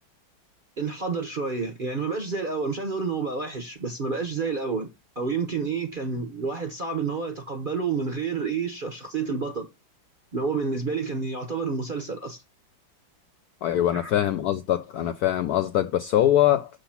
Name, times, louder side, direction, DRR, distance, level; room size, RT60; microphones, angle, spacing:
voice 1, 0.8-4.9 5.2-9.7 10.3-12.4 13.9-14.1, right 4 dB, 40° right, 0.7 m, -29 dB
voice 2, 13.6-16.7, left 12 dB, 75° left, 0.9 m, -23 dB
6.8 x 3.9 x 5.6 m
omnidirectional pair, 2.1 m